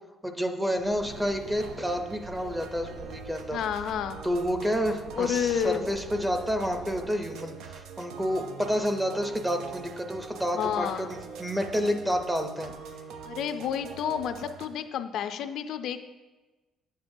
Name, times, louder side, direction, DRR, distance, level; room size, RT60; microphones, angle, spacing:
voice 1, 0.2-3.6 4.2-12.7, equal, 5° right, 5 dB, 0.5 m, -29 dB
sound 1, 0.8-7.1, right 3 dB, 50° right, 0.7 m, -47 dB
sound 2, 1.0-14.7, right 5 dB, 90° right, 0.5 m, -43 dB
voice 2, 3.5-4.2 5.1-5.9 10.5-11.1 13.2-16.0, left 8 dB, 65° left, 9 dB, 0.3 m, -30 dB
8.8 x 7.2 x 2.6 m, 1.2 s
cardioid pair, 165°, 0 cm